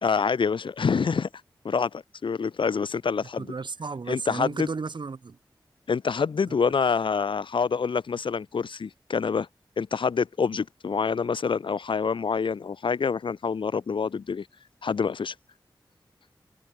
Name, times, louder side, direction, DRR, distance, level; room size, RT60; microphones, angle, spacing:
voice 1, 0.0-1.3 1.6-3.5 4.1-4.7 5.9-9.5 9.8-14.4 14.8-15.3, left 5 dB, 80° left, 1.2 m, -26 dB
voice 2, 3.4-5.4 6.5-6.6, right 4 dB, 65° right, 4.9 m, -34 dB
cardioid pair, 60°, 8 cm